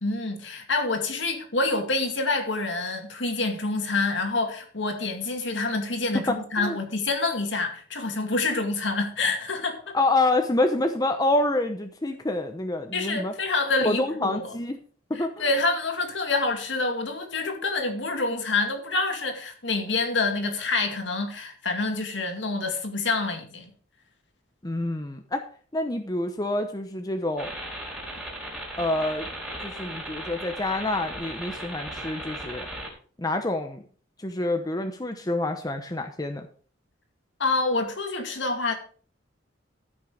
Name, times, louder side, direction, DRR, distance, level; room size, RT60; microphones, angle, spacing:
voice 1, 0.0-10.0 12.9-14.5 15.1-23.7 37.4-38.7, left 3 dB, 65° left, 2.3 m, -27 dB
voice 2, 6.1-6.8 9.9-13.3 13.8-14.8 15.1-15.5 24.6-25.4 25.7-27.5 28.8-29.3 29.6-32.7 33.2-33.8 34.2-36.5, left 2 dB, 20° left, 0.8 m, -27 dB
sound 1, 27.4-32.9, right 1 dB, 5° right, 4.4 m, -37 dB
14.0 x 6.2 x 5.1 m
head